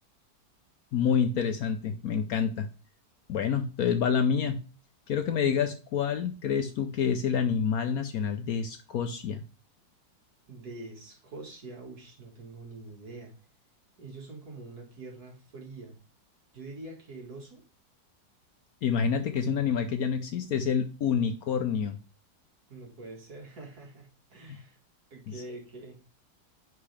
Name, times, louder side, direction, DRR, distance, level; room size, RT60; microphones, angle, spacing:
voice 1, 0.9-2.7 3.3-4.6 5.1-9.4 18.8-22.0 24.5-24.6 25.3-25.4, left 7 dB, 65° left, 8 dB, 1.0 m, -28 dB
voice 2, 10.5-13.3 14.0-16.0 16.5-17.6 22.7-24.8 25.1-26.0, right 2 dB, 60° right, 1 dB, 2.4 m, -45 dB
9.9 x 4.7 x 3.4 m, 0.33 s
omnidirectional pair, 1.9 m